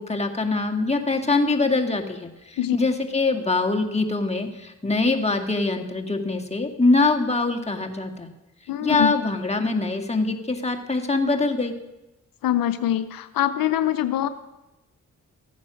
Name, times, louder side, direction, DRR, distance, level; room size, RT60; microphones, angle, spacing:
voice 1, 0.0-8.3 8.8-11.8, left 3 dB, 20° left, 3 dB, 2.0 m, -23 dB
voice 2, 8.7-9.1 12.4-14.3, left 12 dB, 85° left, 12 dB, 0.6 m, -23 dB
14.0 x 9.3 x 6.3 m, 1.0 s
supercardioid pair, 45°, 34 cm